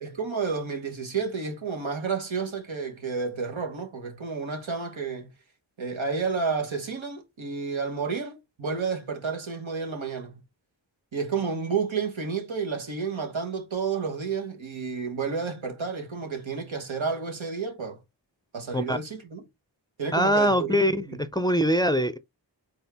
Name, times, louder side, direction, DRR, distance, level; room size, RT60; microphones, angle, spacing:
voice 1, 0.0-5.3 5.8-10.4 11.1-18.0 18.5-19.4 20.0-21.2, right 5 dB, 85° right, 1.4 m, -31 dB
voice 2, 20.1-22.2, equal, 10° left, 0.4 m, -23 dB
4.3 x 3.5 x 3.5 m
cardioid pair, 45°, 46 cm